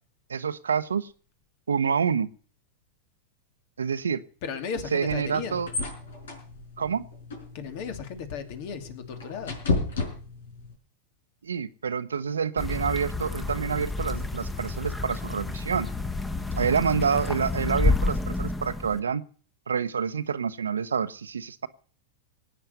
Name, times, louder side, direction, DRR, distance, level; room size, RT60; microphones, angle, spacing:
voice 1, 0.3-1.1 1.7-2.3 3.8-4.2 4.9-5.7 6.8-7.0 11.4-15.9 16.5-19.2 19.7-21.7, right 6 dB, 90° right, 13 dB, 0.9 m, -27 dB
voice 2, 4.4-5.6 7.5-9.6, left 6 dB, 55° left, 8 dB, 2.8 m, -35 dB
sound 1, 5.0-10.7, left 3 dB, 80° left, 5.2 m, -34 dB
sound 2, 12.6-19.0, left 2 dB, 10° left, 1.4 m, -29 dB
19.0 x 9.2 x 6.8 m, 0.42 s
hypercardioid pair, 105°, 0 cm